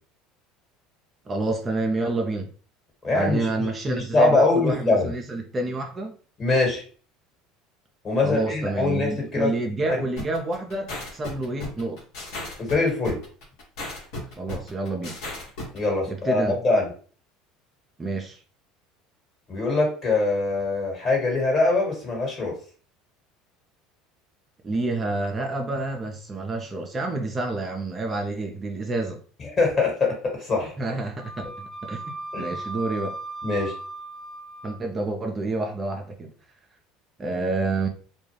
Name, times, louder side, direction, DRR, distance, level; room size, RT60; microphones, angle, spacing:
voice 1, 1.3-2.5 3.1-6.2 8.2-12.0 14.4-15.2 16.1-16.6 18.0-18.4 24.6-29.2 30.8-32.0 32.3-33.2 34.6-36.3 37.2-37.9, right 2 dB, 30° right, 0.5 m, -28 dB
voice 2, 3.0-5.1 6.4-6.8 8.0-9.5 9.9-10.0 12.6-13.2 15.7-16.9 19.5-22.5 29.6-30.7 32.3-32.5 33.4-33.7, left 3 dB, 35° left, 1.5 m, -23 dB
sound 1, 10.2-15.8, left 2 dB, 65° left, 1.1 m, -35 dB
Wind instrument woodwind instrument, 31.2-34.8, right 2 dB, 5° left, 0.8 m, -37 dB
2.3 x 2.2 x 3.1 m
hypercardioid pair, 80°, 0 cm